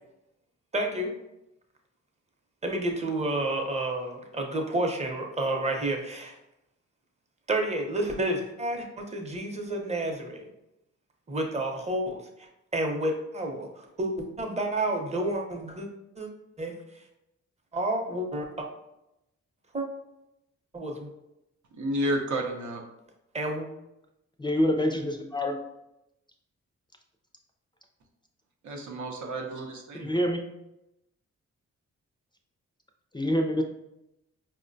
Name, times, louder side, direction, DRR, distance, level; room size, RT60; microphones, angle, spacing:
voice 1, 0.7-1.1 2.6-6.4 7.5-10.4 11.3-12.2 12.7-15.9 16.2-16.3 16.6-16.7 17.7-18.7 19.7-19.9 20.7-21.1 23.3-23.7, right 1 dB, 25° right, 2 dB, 0.7 m, -30 dB
voice 2, 21.8-22.8 28.6-30.1, right 1 dB, 90° right, 1 dB, 0.7 m, -31 dB
voice 3, 24.4-25.6 29.9-30.4 33.1-33.6, equal, 15° left, 3 dB, 0.4 m, -26 dB
4.9 x 2.1 x 2.5 m, 0.87 s
cardioid pair, 75°, 29 cm